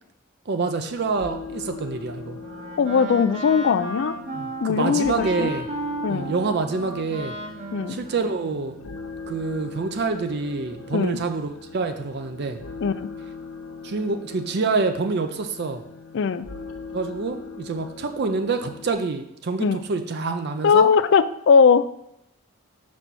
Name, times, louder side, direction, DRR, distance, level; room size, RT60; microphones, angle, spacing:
voice 1, 0.5-2.4 4.3-5.7 6.1-7.3 7.9-8.8 9.3-12.6 13.8-15.8 16.9-20.9, right 4 dB, 50° right, 7 dB, 0.5 m, -27 dB
sound 1, 0.9-18.9, left 4 dB, 75° left, 0.7 m, -40 dB
Wind instrument woodwind instrument, 2.3-9.0, right 2 dB, 30° right, 0.9 m, -34 dB
voice 2, 2.8-4.1 4.6-5.5 6.0-6.3 7.7-8.0 10.9-11.2 12.8-13.1 16.1-16.5 19.6-19.8 20.6-21.9, left 6 dB, 55° left, 14 dB, 0.3 m, -19 dB
5.4 x 4.2 x 6.1 m, 0.82 s
head